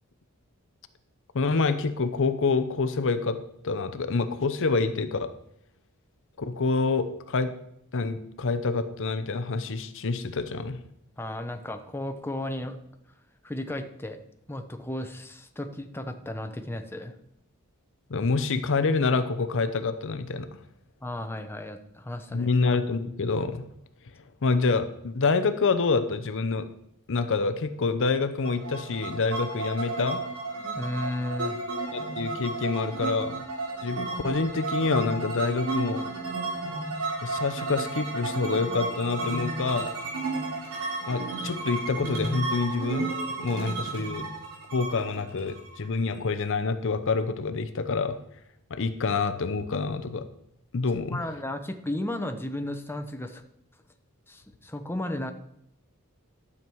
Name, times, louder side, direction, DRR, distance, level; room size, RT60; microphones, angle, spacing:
voice 1, 1.3-5.3 6.4-7.5 7.9-10.8 18.1-20.5 22.3-23.7 24.4-26.7 27.1-30.2 31.9-33.4 33.8-36.1 37.2-39.9 41.1-43.1 43.4-44.3 44.7-48.2 48.7-50.3 50.7-51.2, left 4 dB, 60° left, 11 dB, 0.7 m, -27 dB
voice 2, 11.2-12.8 13.4-14.2 14.5-17.1 21.0-22.5 30.7-31.6 51.1-53.4 54.3-55.3, left 1 dB, 10° left, 6 dB, 0.7 m, -34 dB
sound 1, 28.4-46.2, right 3 dB, 90° right, 3.4 m, -33 dB
12.0 x 7.3 x 4.6 m, 0.75 s
head